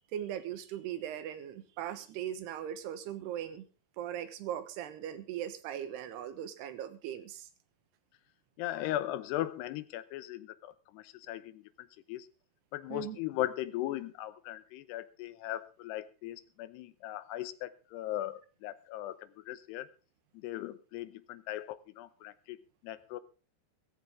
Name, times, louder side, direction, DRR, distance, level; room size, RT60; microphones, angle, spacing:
voice 1, 0.1-3.6 4.0-7.5 12.9-13.2, right 10 dB, 85° right, 11 dB, 3.3 m, -39 dB
voice 2, 8.6-12.3 12.7-19.9 20.3-22.6 22.8-23.2, left 14 dB, 90° left, 14 dB, 3.0 m, -38 dB
17.5 x 14.5 x 3.6 m, 0.34 s
omnidirectional pair, 4.6 m